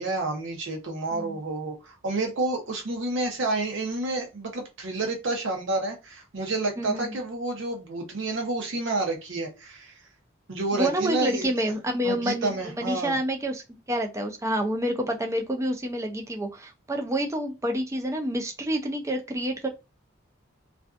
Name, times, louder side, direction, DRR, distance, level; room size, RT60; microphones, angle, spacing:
voice 1, 0.0-9.9 10.5-11.7 12.0-13.2, right 2 dB, 70° right, 3 dB, 0.7 m, -29 dB
voice 2, 6.8-7.1 10.7-19.7, right 1 dB, 15° right, 3 dB, 0.4 m, -28 dB
2.5 x 2.3 x 2.3 m, 0.26 s
head